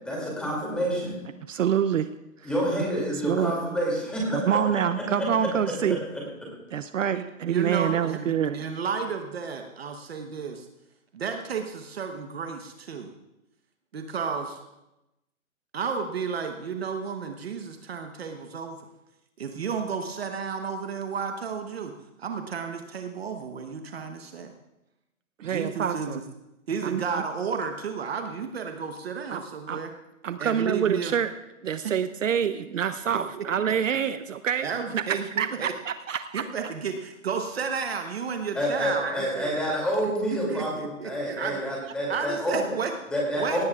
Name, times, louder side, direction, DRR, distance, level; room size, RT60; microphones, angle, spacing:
voice 1, 0.0-1.2 2.4-6.0 6.4-6.5 38.5-42.6 43.1-43.6, equal, ahead, -3 dB, 2.5 m, -28 dB
voice 2, 1.5-2.1 2.4-2.5 2.8-2.9 3.3-3.5 4.3-6.0 6.7-8.6 25.4-26.2 26.8-27.2 29.3-29.4 29.7-29.8 30.2-31.3 31.6-34.7 34.9-35.0 35.4-36.5, right 8 dB, 65° right, 11 dB, 0.7 m, -26 dB
voice 3, 7.1-10.7 11.1-13.1 13.9-14.6 15.7-18.9 19.4-21.9 22.2-24.5 25.4-26.2 26.7-29.9 30.4-31.1 31.8-31.9 33.3-33.4 34.6-35.7 36.3-39.5 40.3-41.6 42.1-42.9 43.4-43.6, right 6 dB, 45° right, 5 dB, 1.1 m, -32 dB
18.0 x 16.0 x 2.4 m, 0.95 s
hypercardioid pair, 170°, 41 cm